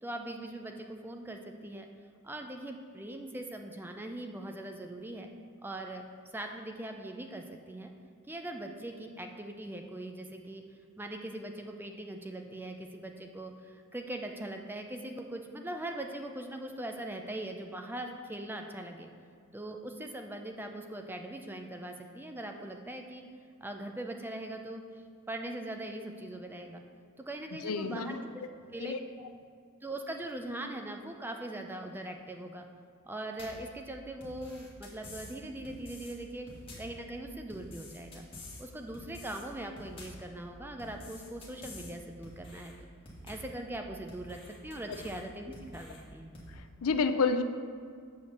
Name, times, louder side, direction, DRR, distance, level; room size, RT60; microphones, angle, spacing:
voice 1, 0.0-1.9 2.2-5.3 5.6-6.0 6.3-7.9 8.3-10.6 11.0-19.1 19.5-23.2 23.6-24.8 25.3-26.8 27.2-28.5 28.7-28.9 29.8-32.7 33.0-36.5 36.8-38.3 38.6-42.7 43.2-46.3, right 1 dB, 10° right, 4 dB, 0.4 m, -41 dB
voice 2, 27.6-28.2 28.8-29.0 46.8-47.4, left 4 dB, 80° left, 9 dB, 0.5 m, -28 dB
sound 1, 33.4-33.7 34.2-35.3 35.6-36.1 36.5-37.0 37.5-38.6 38.9-39.4 39.8-40.3 40.8-41.9 42.2-42.7 43.1-43.6 44.1-45.2 45.5-46.0 46.3-46.5, left 1 dB, 25° left, 1.6 m, -48 dB
7.1 x 4.7 x 6.6 m, 2.2 s
head